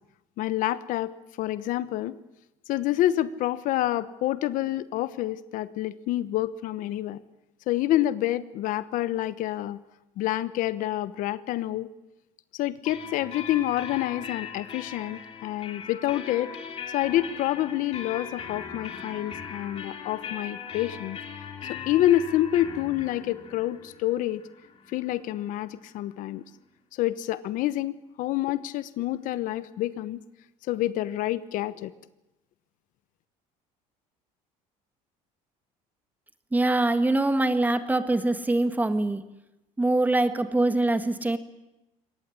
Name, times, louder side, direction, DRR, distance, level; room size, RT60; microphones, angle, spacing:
voice 1, 0.4-2.1 2.7-7.2 7.7-9.8 10.2-11.9 12.5-16.6 16.9-21.2 21.9-24.4 24.9-26.4 26.9-30.2 30.7-31.9, left 14 dB, 65° left, 15 dB, 1.0 m, -28 dB
sound 1, 12.8-26.4, left 7 dB, 40° left, 3.2 m, -40 dB
voice 2, 36.5-39.2 39.8-41.4, right 2 dB, 10° right, 9 dB, 1.7 m, -23 dB
23.0 x 18.5 x 10.0 m, 0.95 s
cardioid pair, 130°, 15 cm